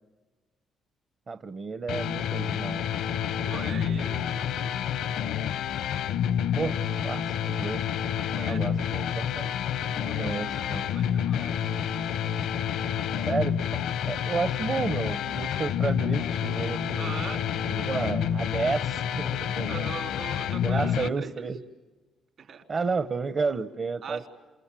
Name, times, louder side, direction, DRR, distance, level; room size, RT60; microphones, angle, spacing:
voice 1, 1.3-2.8 6.6-7.9 8.5-9.6 10.2-10.9 13.2-17.2 17.7-19.7 20.6-21.6 22.7-24.3, right 4 dB, 45° right, 10 dB, 0.9 m, -31 dB
sound 1, 1.9-21.1, left 9 dB, 85° left, 0.8 m, -29 dB
voice 2, 3.4-4.8 8.3-9.0 9.4-9.6 9.9-12.1 17.0-17.4 19.7-21.5 22.4-22.6 24.0-24.3, right 6 dB, 65° right, 5 dB, 3.6 m, -41 dB
28.5 x 28.0 x 7.6 m, 1.3 s
cardioid pair, 90°, 0 cm